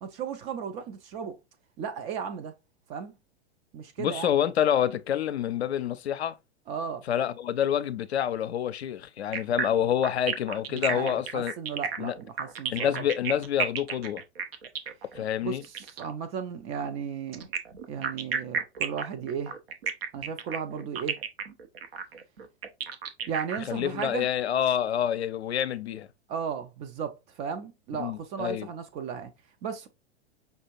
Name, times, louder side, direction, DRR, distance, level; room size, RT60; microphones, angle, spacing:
voice 1, 0.0-1.4 1.8-2.5 2.9-3.1 3.7-4.3 6.7-7.0 10.7-13.1 15.4-17.4 17.9-19.5 20.1-21.2 23.3-24.3 26.3-29.3 29.6-29.9, right 7 dB, 20° right, 0.3 m, -35 dB
voice 2, 4.0-6.4 7.1-11.5 12.0-12.1 12.7-14.2 15.1-15.6 23.7-26.1 28.0-28.7, left 10 dB, 75° left, 0.5 m, -27 dB
sound 1, 9.3-16.1 17.3-24.0, right 7 dB, 60° right, 0.8 m, -32 dB
5.4 x 2.4 x 2.9 m
figure-of-eight pair, 100°, 33 cm